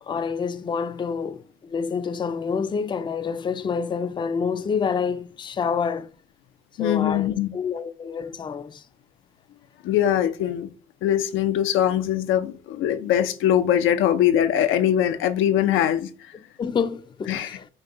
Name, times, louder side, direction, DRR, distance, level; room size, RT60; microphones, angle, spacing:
voice 1, 0.0-6.1 6.8-8.8 16.6-17.7, left 6 dB, 25° left, 0.4 m, -28 dB
voice 2, 6.8-7.5 9.8-10.7 11.0-16.1 17.3-17.6, left 10 dB, 85° left, 0.5 m, -22 dB
5.3 x 2.2 x 3.6 m
cardioid pair, 90°, 20 cm